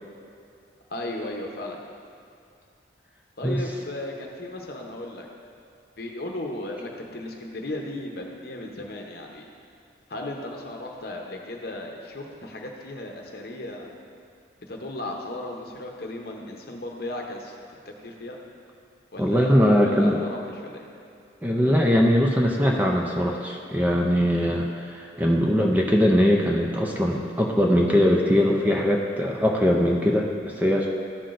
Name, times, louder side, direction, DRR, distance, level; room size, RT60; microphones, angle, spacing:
voice 1, 0.9-1.8 3.4-5.3 6.0-9.5 10.1-13.9 14.7-17.5 17.9-18.4 19.1-20.9, left 1 dB, 55° left, 1 dB, 0.8 m, -35 dB
voice 2, 19.2-20.2 21.4-30.9, equal, 10° right, -1 dB, 0.4 m, -21 dB
12.5 x 5.9 x 2.5 m, 2.5 s
head